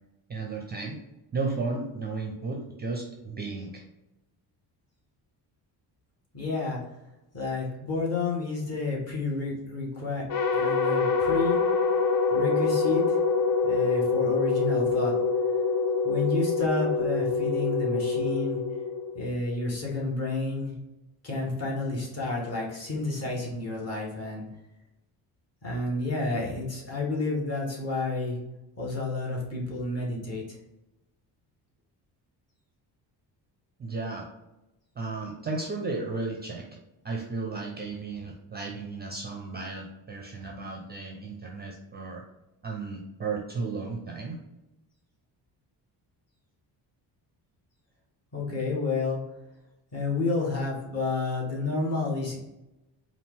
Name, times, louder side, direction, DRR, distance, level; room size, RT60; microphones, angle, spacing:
voice 1, 0.3-1.0 1.3-3.8 33.8-34.3 35.0-36.6 37.0-42.2 42.6-44.4, right 3 dB, 25° right, 1 dB, 0.4 m, -34 dB
voice 2, 6.3-6.8 7.3-10.2 10.5-11.6 12.3-13.2 13.6-15.1 16.0-18.6 19.1-20.7 21.2-24.4 25.6-28.4 28.8-30.6 48.3-49.2 49.9-52.4, left 3 dB, 35° left, -4 dB, 1.4 m, -30 dB
sound 1, 10.3-19.6, left 4 dB, 55° left, 0.6 m, -25 dB
4.2 x 2.5 x 3.6 m, 0.95 s
cardioid pair, 145°, 42 cm